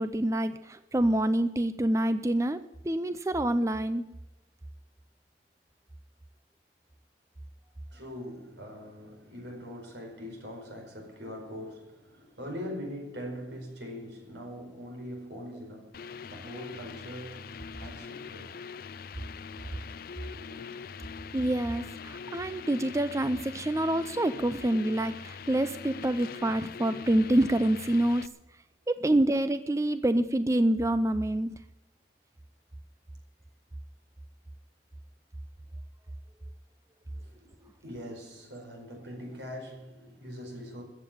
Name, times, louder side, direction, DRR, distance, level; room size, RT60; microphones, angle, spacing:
voice 1, 0.0-4.0 21.3-28.3 28.9-31.5, right 1 dB, 15° right, 0.4 m, -27 dB
voice 2, 7.9-18.6 20.2-20.7 37.1-40.8, equal, 85° right, 4.7 m, -42 dB
sound 1, 15.9-28.3, left 6 dB, 55° left, 0.4 m, -43 dB
14.5 x 7.5 x 10.0 m
head